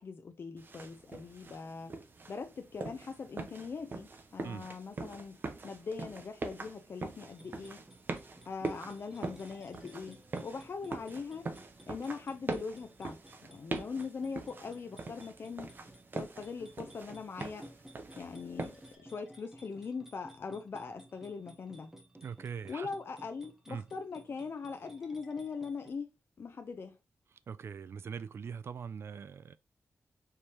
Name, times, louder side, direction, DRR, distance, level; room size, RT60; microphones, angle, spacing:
voice 1, 0.0-1.9 2.3-7.8 8.5-11.5 11.9-13.2 13.5-15.7 16.1-17.7 18.2-21.9 22.7-26.1 26.4-27.0, left 5 dB, 50° left, 0.5 m, -41 dB
sound 1, 0.6-18.9, right 3 dB, 40° right, 0.7 m, -43 dB
sound 2, 7.2-25.9, right 1 dB, 10° right, 0.8 m, -57 dB
voice 2, 22.1-22.9 23.7-23.8 27.5-29.6, right 6 dB, 60° right, 0.3 m, -42 dB
4.6 x 3.3 x 2.9 m
wide cardioid pair, 130°, 5 cm